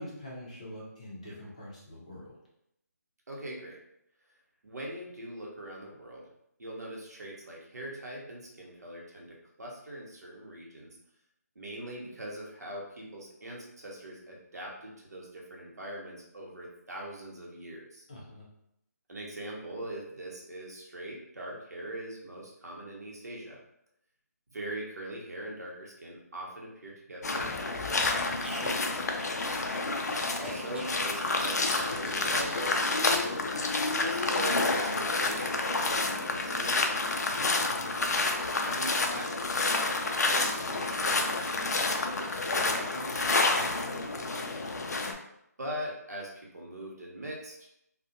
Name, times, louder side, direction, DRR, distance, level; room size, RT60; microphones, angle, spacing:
voice 1, 0.0-2.3 18.1-18.4 30.1-30.4 37.4-37.7, left 1 dB, 25° left, -6 dB, 0.6 m, -44 dB
voice 2, 3.3-3.8 4.6-6.3 6.6-11.0 11.5-18.0 19.1-23.6 24.5-29.3 30.4-33.3 34.0-37.2 38.6-44.5 45.6-47.7, right 1 dB, 65° right, -2 dB, 0.9 m, -42 dB
sound 1, 27.2-45.1, left 3 dB, 70° left, 0.4 m, -29 dB
Fart, 27.2-32.7, equal, 40° right, 0.6 m, -44 dB
2.4 x 2.1 x 2.7 m, 0.78 s
hypercardioid pair, 180°, 9 cm